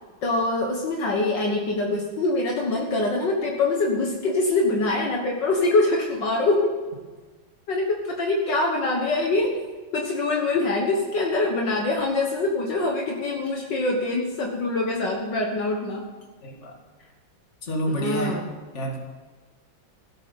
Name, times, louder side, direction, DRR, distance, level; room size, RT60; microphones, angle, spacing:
voice 1, 0.2-6.7 7.7-9.6 9.9-16.0 17.9-18.5, left 2 dB, 65° left, 1 dB, 2.1 m, -24 dB
voice 2, 16.4-16.8 17.6-18.4 18.7-19.0, right 1 dB, 35° left, 1 dB, 2.5 m, -28 dB
16.5 x 8.5 x 7.1 m, 1.4 s
omnidirectional pair, 2.2 m